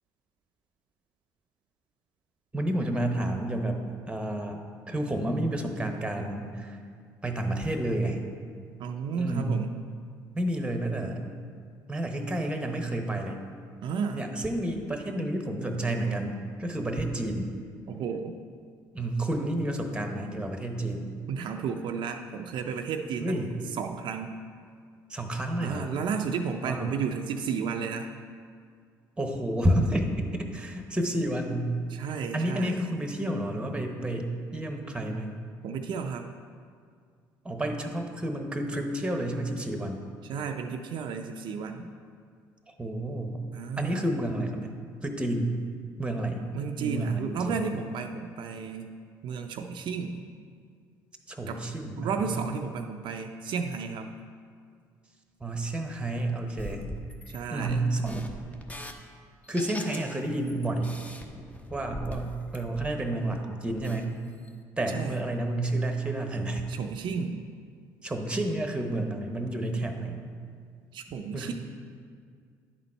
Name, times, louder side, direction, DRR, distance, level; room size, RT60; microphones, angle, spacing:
voice 1, 2.5-3.8 4.1-6.8 7.2-8.2 9.2-9.5 10.3-11.3 11.9-13.4 14.1-17.5 18.9-21.1 23.2-23.5 25.1-25.9 26.6-26.9 29.2-31.8 32.3-35.4 37.4-40.0 42.7-43.4 43.8-45.6 46.0-46.5 46.8-47.6 51.3-52.4 55.4-56.8 57.5-58.2 59.5-60.9 61.7-64.1 64.8-66.7 68.0-70.2 71.3-71.5, right 1 dB, 10° right, 4 dB, 0.9 m, -30 dB
voice 2, 8.8-9.8 13.8-14.2 17.9-18.4 21.3-24.3 25.6-28.1 31.9-32.7 35.6-36.3 40.3-41.9 43.5-44.1 46.5-48.9 49.2-50.2 51.5-51.6 52.0-54.1 57.3-57.8 64.9-65.2 66.7-67.4 70.9-71.5, right 6 dB, 60° right, 4 dB, 0.4 m, -33 dB
sound 1, 56.6-58.9 59.4-60.2 60.5-63.4 63.7-64.0 64.4-64.5, equal, 15° left, 0.8 m, -41 dB
10.5 x 4.0 x 4.4 m, 2.2 s
supercardioid pair, 70°, 9 cm